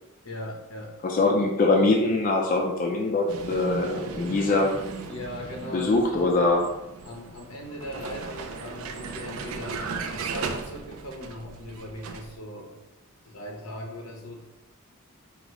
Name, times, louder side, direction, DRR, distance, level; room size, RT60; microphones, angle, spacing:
voice 1, 0.2-0.9 5.1-6.3 7.0-12.7 13.2-14.4, left 1 dB, 80° left, 0 dB, 0.9 m, -39 dB
voice 2, 1.0-4.7 5.7-6.7, left 2 dB, 40° left, 1 dB, 0.4 m, -23 dB
Vehicle, 3.3-12.4, right 4 dB, 70° right, 0.4 m, -37 dB
4.8 x 2.0 x 3.6 m, 0.96 s
head